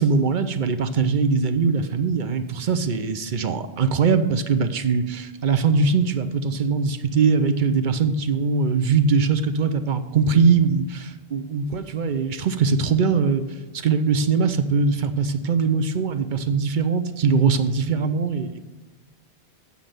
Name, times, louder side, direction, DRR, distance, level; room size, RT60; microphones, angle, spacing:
voice 1, 0.0-13.4 13.7-18.6, right 5 dB, 55° right, 10 dB, 0.8 m, -21 dB
8.5 x 5.3 x 7.5 m, 1.2 s
omnidirectional pair, 1.1 m